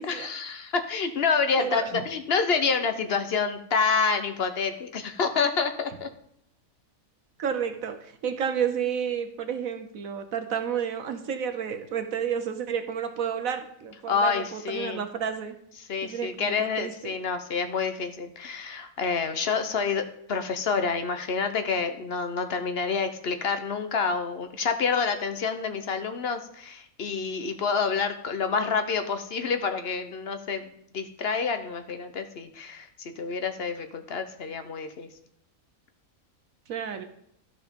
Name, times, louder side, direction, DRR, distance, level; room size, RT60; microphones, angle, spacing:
voice 1, 0.0-6.1 14.1-15.0 15.8-30.6 30.9-35.1, left 5 dB, 50° left, 8 dB, 1.0 m, -28 dB
voice 2, 1.6-2.0 7.4-15.5 16.0-16.9 36.7-37.0, right 7 dB, 75° right, 7 dB, 1.2 m, -31 dB
12.5 x 5.0 x 5.2 m, 0.71 s
omnidirectional pair, 1.5 m